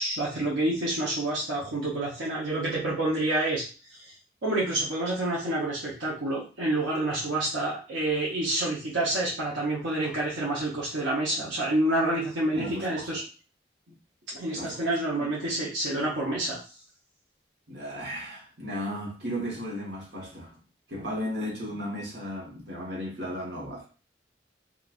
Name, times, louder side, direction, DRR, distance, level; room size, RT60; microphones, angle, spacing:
voice 1, 0.0-4.1 4.4-13.2 14.3-16.6, right 1 dB, 85° right, -6 dB, 0.9 m, -28 dB
voice 2, 12.5-13.1 14.5-14.8 15.1-15.3 17.7-20.6 20.9-23.9, equal, 65° right, -2 dB, 1.2 m, -35 dB
3.8 x 2.4 x 2.4 m, 0.36 s
head